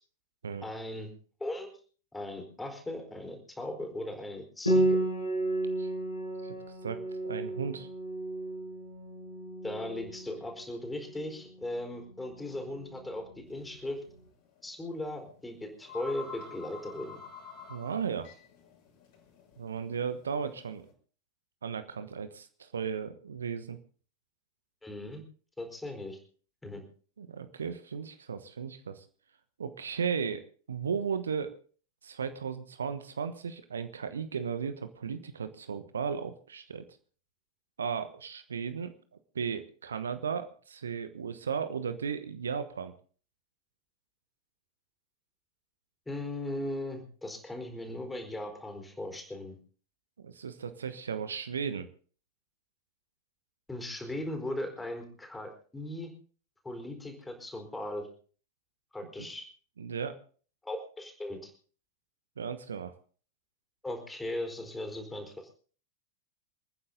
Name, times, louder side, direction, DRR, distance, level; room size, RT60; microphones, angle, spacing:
voice 1, 0.6-1.1 1.4-1.7 2.1-5.0 9.6-14.0 14.6-17.2 24.8-25.2 25.6-26.2 26.6-26.8 46.1-49.6 53.7-56.1 56.6-58.1 58.9-59.4 60.6-61.5 63.8-65.5, left 1 dB, 10° left, 4 dB, 4.5 m, -38 dB
Piano, 4.7-14.0, right 1 dB, 85° left, 5.3 m, -33 dB
voice 2, 7.2-7.9 17.7-18.3 19.6-20.9 21.6-23.8 27.2-29.0 29.6-31.5 32.0-36.8 37.8-38.9 39.3-42.9 50.2-51.9 59.2-59.3 59.8-60.1 62.4-62.9, right 6 dB, 70° right, 10 dB, 1.2 m, -35 dB
sound 1, 13.5-13.7 14.1-14.2 15.3-15.4 15.6-20.9, left 5 dB, 50° left, 6.3 m, -48 dB
28.0 x 9.9 x 3.9 m, 0.41 s
figure-of-eight pair, 90°, 0 cm